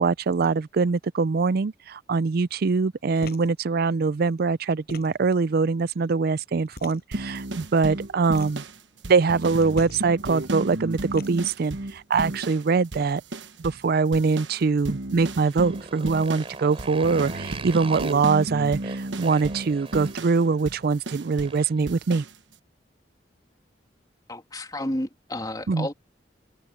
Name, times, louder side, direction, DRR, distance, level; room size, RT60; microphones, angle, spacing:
voice 1, 0.0-8.6 9.1-13.2 13.6-22.2 25.7-25.9, right 4 dB, 55° right, 0.4 m, -23 dB
sound 1, 3.2-3.5 4.7-5.4 6.7-7.3 8.2-8.7 9.7-10.0 10.9-11.6, left 2 dB, 60° left, 6.3 m, -42 dB
sound 2, 7.1-12.7 12.9-13.9 14.1-21.6 21.9-22.3, right 1 dB, 85° right, 1.2 m, -34 dB
Motorcycle, 15.3-21.9, right 3 dB, 30° right, 5.9 m, -41 dB
voice 2, 24.3-25.9, left 1 dB, 20° left, 2.7 m, -31 dB
head